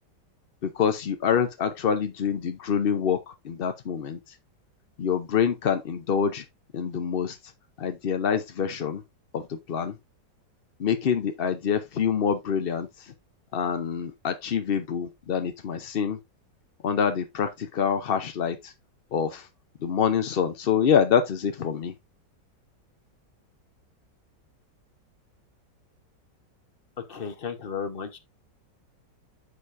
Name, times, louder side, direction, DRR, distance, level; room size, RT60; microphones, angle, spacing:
voice 1, 0.6-3.2 3.4-4.2 5.0-6.4 6.7-7.4 7.8-9.0 9.3-9.9 10.8-13.1 13.5-16.2 16.8-18.7 19.1-19.5 19.8-21.9, left 7 dB, 60° left, 0.6 m, -26 dB
voice 2, 27.0-28.2, left 6 dB, 40° left, 1.0 m, -34 dB
9.2 x 6.5 x 2.6 m
omnidirectional pair, 1.9 m